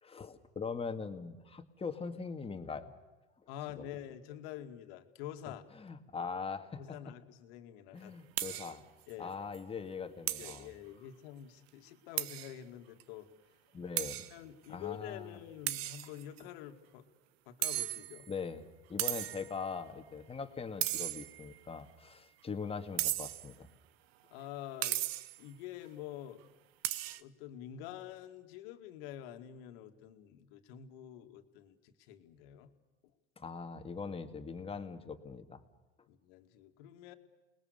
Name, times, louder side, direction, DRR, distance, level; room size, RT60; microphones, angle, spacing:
voice 1, 0.0-2.9 3.7-3.8 5.8-6.8 7.9-8.8 9.2-10.7 13.7-14.3 14.7-15.3 18.3-18.6 18.9-23.7 33.4-35.6, left 5 dB, 20° left, 7 dB, 2.1 m, -41 dB
voice 2, 3.5-5.6 6.8-8.1 8.5-8.6 9.1-9.3 10.4-13.3 14.3-17.1 17.5-18.3 24.3-25.0 25.4-26.4 27.2-32.7 36.1-37.1, left 11 dB, 70° left, 6 dB, 2.3 m, -47 dB
sound 1, 8.4-8.8 9.1-9.2 9.5-9.6 10.3-10.6 12.2-12.5 13.0-13.1 14.0-14.3 15.7-16.4 17.6-18.3 19.0-19.5 20.8-21.5 23.0-23.5 24.8-25.4 26.8-27.2, right 15 dB, 75° right, 1.1 m, -36 dB
28.5 x 20.5 x 6.8 m, 1.2 s
supercardioid pair, 105°, 31 cm